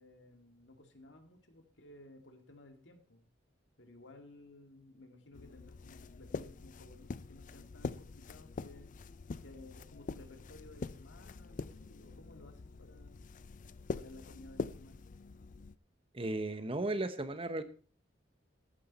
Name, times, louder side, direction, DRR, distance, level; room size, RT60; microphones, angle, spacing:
voice 1, 0.0-3.2 3.8-9.0 9.4-13.3 13.9-15.0, left 2 dB, 75° left, 5 dB, 2.2 m, -56 dB
sound 1, 5.3-15.8, left 4 dB, 45° left, 0.4 m, -44 dB
voice 2, 16.1-17.6, right 2 dB, 30° right, 11 dB, 1.0 m, -35 dB
14.0 x 9.3 x 4.2 m, 0.39 s
head